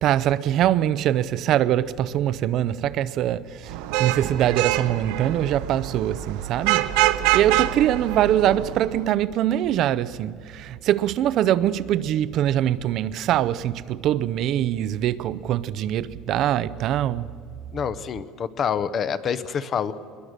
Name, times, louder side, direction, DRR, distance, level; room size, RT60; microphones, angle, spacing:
voice 1, 0.0-3.7 4.0-6.9 7.3-17.3, right 11 dB, 45° right, 0.5 m, -23 dB
Vehicle horn car horn honking / Traffic noise roadway noise, 3.7-9.0, right 14 dB, 75° right, 0.8 m, -25 dB
voice 2, 17.7-19.9, left 7 dB, 30° left, 0.7 m, -27 dB
21.5 x 21.0 x 6.5 m
cardioid pair, 165°, 0 cm